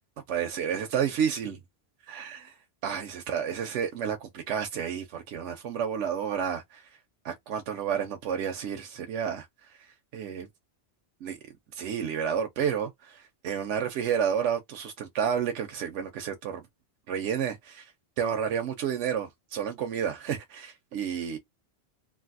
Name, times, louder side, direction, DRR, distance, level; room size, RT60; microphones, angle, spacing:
voice 1, 0.3-1.6 2.1-2.6 2.8-6.9 7.2-10.5 11.2-11.4 11.7-16.6 17.1-17.9 18.2-21.4, right 8 dB, 85° right, 1.0 m, -31 dB
3.2 x 2.6 x 2.6 m
omnidirectional pair, 1.2 m